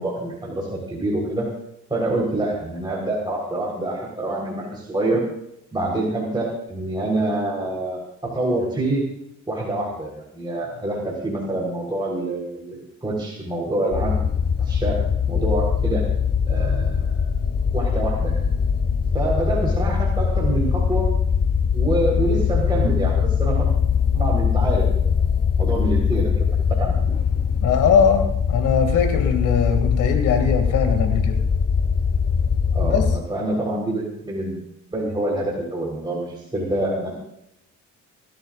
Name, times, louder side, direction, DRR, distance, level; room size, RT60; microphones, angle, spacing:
voice 1, 0.0-1.5 1.9-5.3 5.7-9.0 9.5-14.1 14.6-15.0 15.3-16.0 16.5-17.3 17.7-18.4 19.1-21.1 21.7-23.7 24.1-25.2 25.6-27.0 32.7-34.6 34.9-37.1, right 2 dB, 15° right, -4 dB, 4.2 m, -26 dB
sound 1, 13.9-33.2, left 6 dB, 30° left, 0.6 m, -21 dB
voice 2, 27.6-31.4 32.8-33.1, left 6 dB, 85° left, 6 dB, 2.5 m, -20 dB
25.5 x 13.0 x 2.5 m, 0.79 s
cardioid pair, 90°, 30 cm